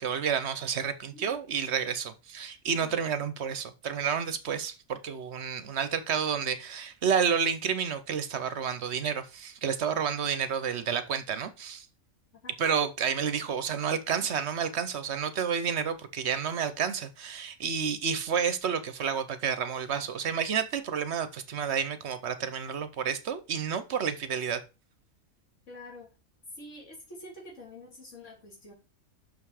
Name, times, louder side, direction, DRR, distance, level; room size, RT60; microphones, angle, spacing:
voice 1, 0.0-11.9 12.6-24.6, right 7 dB, 55° right, 0.9 m, -30 dB
voice 2, 25.7-26.1 26.6-28.7, left 1 dB, 55° left, 3.1 m, -47 dB
6.2 x 5.6 x 4.8 m
omnidirectional pair, 1.5 m